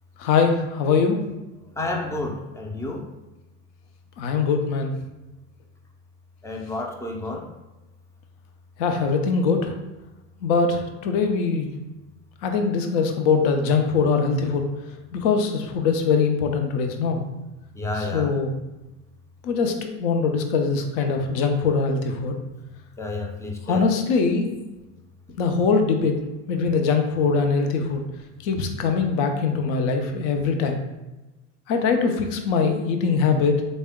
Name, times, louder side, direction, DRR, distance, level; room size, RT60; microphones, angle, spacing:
voice 1, 0.2-1.2 4.2-4.9 8.8-9.7 10.4-11.7 12.4-14.7 15.1-17.3 18.0-18.6 19.4-22.3 23.7-24.6 25.4-26.2 26.5-28.0 28.4-30.8 31.7-33.7, left 5 dB, 65° left, 5 dB, 0.7 m, -22 dB
voice 2, 1.8-3.0 6.4-7.4 17.8-18.3 23.0-23.9, left 2 dB, 10° left, 2 dB, 0.4 m, -30 dB
3.5 x 2.1 x 3.5 m, 1.0 s
supercardioid pair, 95°, 39 cm